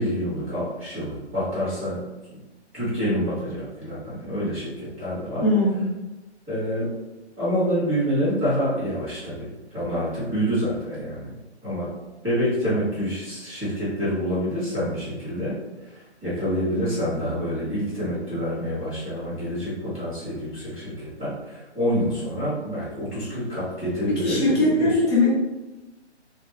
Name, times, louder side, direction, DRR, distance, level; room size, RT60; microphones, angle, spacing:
voice 1, 0.0-2.0 2.7-5.4 6.5-6.9 7.4-11.3 11.6-11.9 12.2-25.0, equal, 5° right, -21 dB, 0.4 m, -27 dB
voice 2, 5.4-5.8 24.1-25.3, left 2 dB, 25° left, -6 dB, 0.8 m, -20 dB
3.1 x 2.1 x 2.9 m, 1.1 s
figure-of-eight pair, 135°, 34 cm